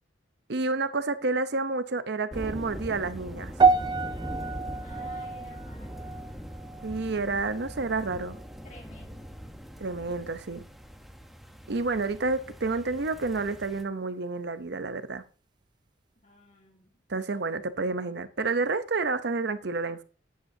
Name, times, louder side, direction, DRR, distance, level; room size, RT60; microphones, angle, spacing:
voice 1, 0.5-3.7 6.8-8.4 9.8-10.6 11.7-15.2 17.1-20.0, right 3 dB, 60° right, 0.7 m, -29 dB
sound 1, 2.3-13.8, equal, ahead, 0.9 m, -41 dB
sound 2, 3.6-8.0 8.2-8.6 9.3-9.4, right 4 dB, 25° right, 0.3 m, -28 dB
voice 2, 4.8-6.2 8.6-9.3 16.2-17.0, left 1 dB, 40° left, 2.3 m, -53 dB
10.5 x 8.3 x 2.7 m
head